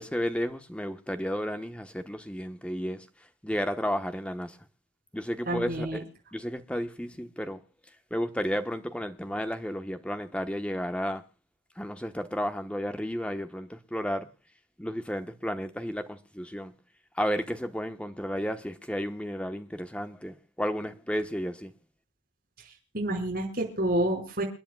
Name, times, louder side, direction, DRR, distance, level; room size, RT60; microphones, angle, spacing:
voice 1, 0.0-3.0 3.4-4.6 5.1-6.0 6.3-7.6 8.1-11.2 11.8-14.3 14.8-16.7 17.2-21.7, equal, 5° left, 1.1 m, -32 dB
voice 2, 5.5-6.0 22.9-24.4, right 1 dB, 50° right, 5.2 m, -28 dB
29.5 x 10.0 x 2.3 m
head